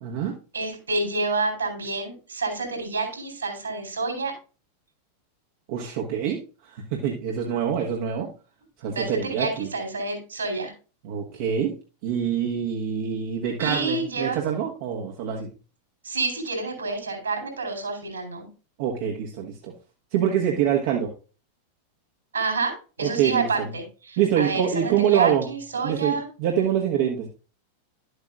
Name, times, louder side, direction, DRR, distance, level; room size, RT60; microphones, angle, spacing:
voice 1, 0.0-0.4 5.7-8.3 8.8-9.7 11.0-11.7 12.0-15.5 18.8-19.7 20.1-21.1 23.0-23.7 24.2-25.5 25.8-27.3, right 9 dB, 50° right, 0 dB, 1.4 m, -25 dB
voice 2, 0.5-4.3 8.9-10.7 13.6-14.4 16.0-18.5 22.3-26.2, right 3 dB, 75° right, 4 dB, 4.4 m, -28 dB
12.0 x 8.0 x 2.5 m, 0.34 s
figure-of-eight pair, 90°, 0 cm